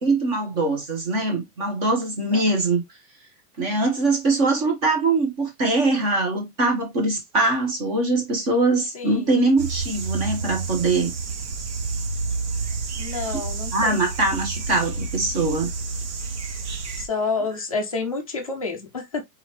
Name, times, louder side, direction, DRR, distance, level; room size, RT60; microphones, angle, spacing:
voice 1, 0.0-2.8 3.6-11.1 13.7-15.7, right 2 dB, 25° right, 1.3 m, -22 dB
voice 2, 8.9-9.3 13.0-14.1 17.0-19.2, left 4 dB, 25° left, 0.5 m, -29 dB
sound 1, 9.6-17.1, right 4 dB, 45° right, 1.2 m, -30 dB
4.0 x 3.9 x 3.0 m
supercardioid pair, 180°, 47 cm